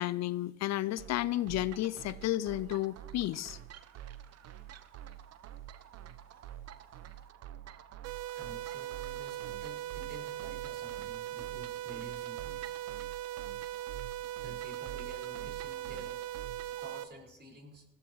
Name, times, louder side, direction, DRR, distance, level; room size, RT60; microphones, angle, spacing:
voice 1, 0.0-3.6, left 15 dB, 65° left, 0.6 m, -32 dB
sound 1, 1.0-16.8, right 11 dB, 60° right, 0.9 m, -48 dB
sound 2, 8.0-17.0, right 13 dB, 85° right, 0.7 m, -40 dB
voice 2, 8.3-12.6 14.1-16.2 16.8-17.8, right 1 dB, 35° right, 5.1 m, -51 dB
20.0 x 14.5 x 3.1 m
hypercardioid pair, 60°, 29 cm